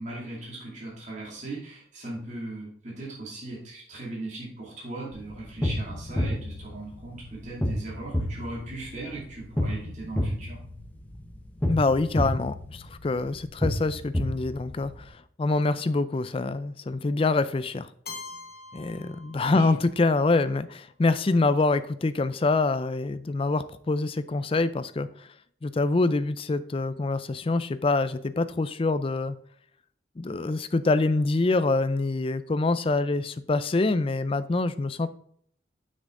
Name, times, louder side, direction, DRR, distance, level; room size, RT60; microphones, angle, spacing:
voice 1, 0.0-10.6 19.5-19.7, right 2 dB, 35° right, -4 dB, 2.3 m, -38 dB
sound 1, 5.1-15.1, left 1 dB, 10° left, 0.9 m, -31 dB
voice 2, 11.7-17.9 18.7-25.1 25.6-29.4 30.2-35.1, left 3 dB, 30° left, 13 dB, 0.4 m, -25 dB
Keyboard (musical), 18.1-20.0, left 4 dB, 50° left, 1.1 m, -43 dB
7.4 x 6.2 x 3.7 m, 0.63 s
head